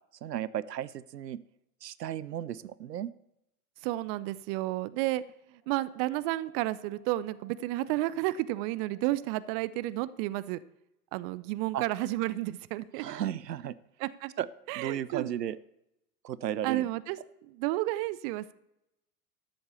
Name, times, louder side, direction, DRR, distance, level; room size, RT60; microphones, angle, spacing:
voice 1, 0.2-1.4 1.8-3.1 11.7-11.8 13.0-13.8 14.4-14.5 14.8-15.6 16.2-16.9, right 11 dB, 80° right, 18 dB, 0.7 m, -34 dB
voice 2, 3.8-5.3 5.7-10.6 11.1-13.0 14.0-14.3 14.7-15.3 16.6-17.2 17.4-18.5, right 17 dB, 35° right, 17 dB, 0.5 m, -31 dB
Brass instrument, 5.6-9.7, right 4 dB, 10° right, 4.3 m, -61 dB
12.5 x 7.8 x 6.9 m, 0.84 s
figure-of-eight pair, 90°, 48 cm